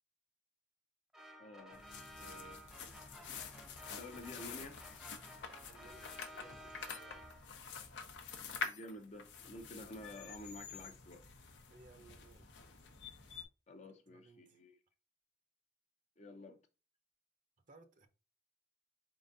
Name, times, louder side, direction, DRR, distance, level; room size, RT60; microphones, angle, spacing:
sound 1, 1.1-7.7, right 1 dB, 5° right, 0.5 m, -54 dB
voice 1, 1.4-1.8 2.2-2.6 3.9-4.8 8.6-11.2 13.7-14.8 16.2-16.6, left 2 dB, 40° left, 0.6 m, -50 dB
sound 2, 1.7-13.4, left 5 dB, 80° left, 0.7 m, -48 dB
voice 2, 5.6-7.2 11.7-12.5 14.1-14.6 17.7-18.1, right 3 dB, 45° right, 0.7 m, -61 dB
4.4 x 3.8 x 2.6 m
head